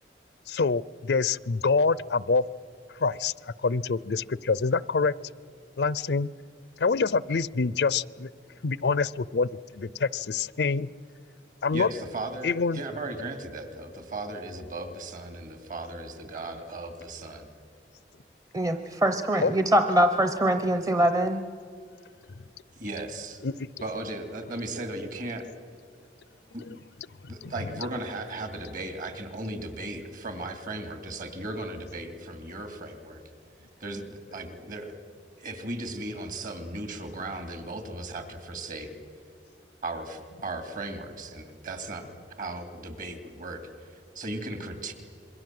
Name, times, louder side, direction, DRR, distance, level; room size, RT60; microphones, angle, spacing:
voice 1, 0.5-2.4 3.0-5.1 5.8-6.3 6.8-8.3 8.6-10.9 11.6-11.9 12.4-12.8 19.4-19.5 23.4-23.7 27.4-27.5, left 4 dB, 70° left, 21 dB, 0.5 m, -26 dB
voice 2, 11.7-17.5 22.8-23.4 23.8-25.5 26.5-26.6 27.3-33.2 33.8-35.0 35.4-38.9 39.8-44.9, right 2 dB, 50° right, 7 dB, 3.0 m, -36 dB
voice 3, 18.5-21.4, right 1 dB, 20° right, 8 dB, 0.9 m, -23 dB
27.0 x 22.5 x 7.8 m, 2.2 s
head